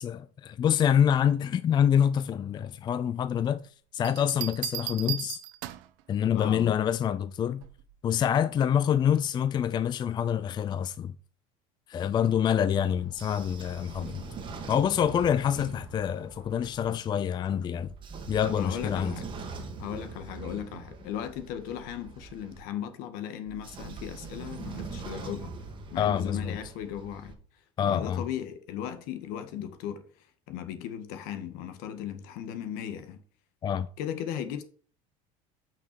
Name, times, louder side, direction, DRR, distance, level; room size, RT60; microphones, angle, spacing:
voice 1, 0.0-5.4 6.1-7.6 8.0-11.2 11.9-14.2 14.7-17.9 18.3-19.1 26.0-26.6 27.8-28.2 33.6-33.9, left 9 dB, 30° left, 0.4 m, -26 dB
Bell, 4.0-6.0 7.6-7.9, right 14 dB, 75° right, 1.0 m, -36 dB
voice 2, 6.3-6.7 18.5-19.3 19.8-25.5 25.9-27.4 27.8-30.0 30.5-33.2 34.0-34.6, left 10 dB, 70° left, 1.7 m, -37 dB
Train / Sliding door, 12.9-16.9 17.8-22.6 23.5-27.3, right 4 dB, 30° right, 2.0 m, -42 dB
8.7 x 5.9 x 4.6 m
supercardioid pair, 125°, 16 cm